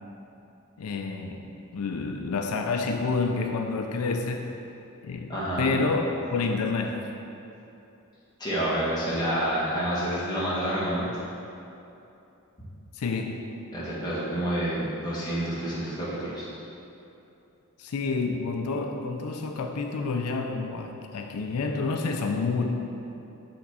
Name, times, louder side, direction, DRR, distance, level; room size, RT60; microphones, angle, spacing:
voice 1, 0.8-4.5 5.0-6.0 6.3-7.0 12.9-13.4 17.8-22.7, left 4 dB, 90° left, 4 dB, 0.4 m, -29 dB
voice 2, 5.3-5.8 8.4-11.1 13.7-16.5, right 1 dB, 20° left, -8 dB, 1.3 m, -28 dB
5.9 x 3.5 x 5.6 m, 2.8 s
head